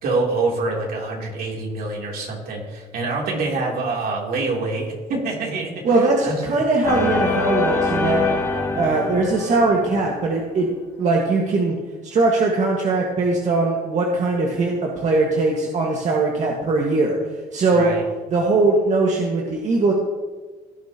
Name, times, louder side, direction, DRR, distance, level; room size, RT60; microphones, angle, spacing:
voice 1, 0.0-5.8 6.2-6.3 17.7-18.0, right 3 dB, 65° right, -2 dB, 3.2 m, -25 dB
voice 2, 5.8-8.2 8.7-10.7 11.0-11.7 12.0-17.2 17.5-17.9 18.3-19.9, right 3 dB, 45° right, -1 dB, 1.7 m, -20 dB
sound 1, 6.8-10.4, left 2 dB, 15° left, 1.9 m, -24 dB
17.0 x 10.5 x 3.0 m, 1.4 s
cardioid pair, 110°, 17 cm